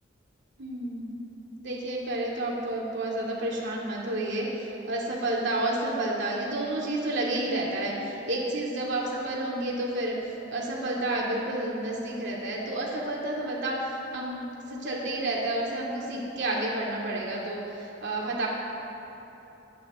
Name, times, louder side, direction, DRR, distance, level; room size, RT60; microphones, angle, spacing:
voice 1, 0.6-1.2 1.6-10.2 10.5-18.5, right 1 dB, 65° right, -3 dB, 2.9 m, -30 dB
23.0 x 10.5 x 3.9 m, 3.0 s
head